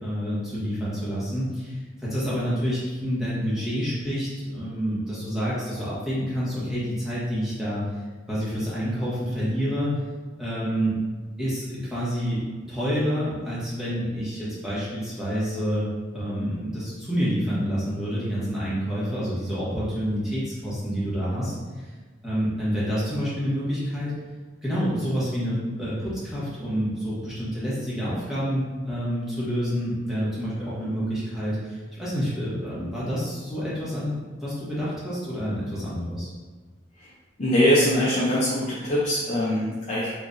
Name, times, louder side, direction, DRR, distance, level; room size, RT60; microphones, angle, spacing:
voice 1, 0.0-7.9 8.3-9.9 10.4-10.9 11.4-12.4 12.7-21.9 22.2-24.1 24.6-36.3, equal, 5° right, -10 dB, 1.2 m, -28 dB
voice 2, 37.4-40.1, equal, 35° left, -9 dB, 0.6 m, -22 dB
3.6 x 3.2 x 2.6 m, 1.4 s
head